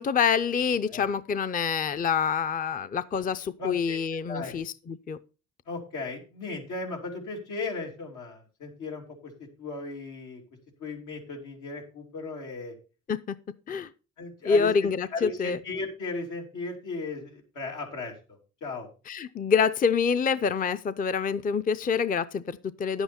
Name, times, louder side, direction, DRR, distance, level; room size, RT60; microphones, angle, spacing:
voice 1, 0.0-5.2 13.1-13.4 13.7-13.9 14.4-15.6 19.1-23.0, left 6 dB, 30° left, 0.5 m, -26 dB
voice 2, 3.6-4.0 4.3-4.5 5.7-10.4 10.8-12.7 14.2-18.1 18.6-18.9, left 3 dB, 90° left, 3.0 m, -36 dB
10.0 x 8.1 x 4.2 m
cardioid pair, 90°, 30 cm